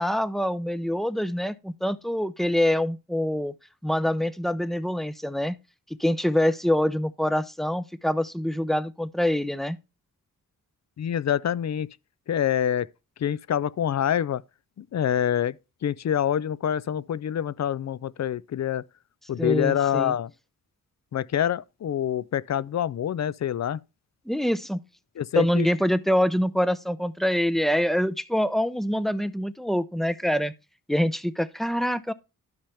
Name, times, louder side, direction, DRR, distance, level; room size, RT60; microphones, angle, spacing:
voice 1, 0.0-3.5 3.8-5.6 6.0-9.8 19.4-20.1 24.3-24.8 25.3-30.5 30.9-32.1, equal, ahead, 0.6 m, -25 dB
voice 2, 11.0-11.9 12.3-12.9 13.2-14.4 14.8-15.6 15.8-18.8 19.3-20.3 21.1-23.8 25.2-25.7, left 10 dB, 50° left, 0.5 m, -26 dB
12.0 x 5.6 x 3.4 m
wide cardioid pair, 100°, 34 cm